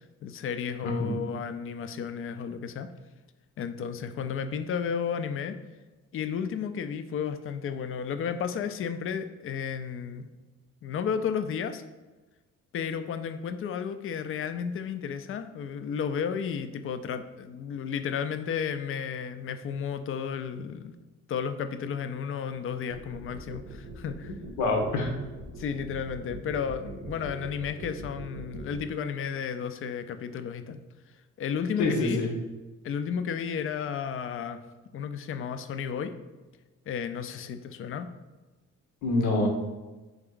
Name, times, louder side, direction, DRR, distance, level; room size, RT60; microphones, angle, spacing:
voice 1, 0.2-2.9 3.6-5.6 6.1-10.3 10.8-11.8 12.7-20.9 21.3-24.4 25.6-30.8 31.4-32.2 32.8-34.6 34.9-36.1 36.9-38.1, left 7 dB, 45° left, 10 dB, 0.4 m, -33 dB
voice 2, 0.8-1.2 24.6-25.1 31.8-32.3 39.0-39.5, left 2 dB, 90° left, 2 dB, 0.9 m, -26 dB
sound 1, 22.9-28.8, right 3 dB, 75° right, 0.8 m, -42 dB
3.5 x 3.4 x 3.7 m, 1.2 s
cardioid pair, 90°, 30 cm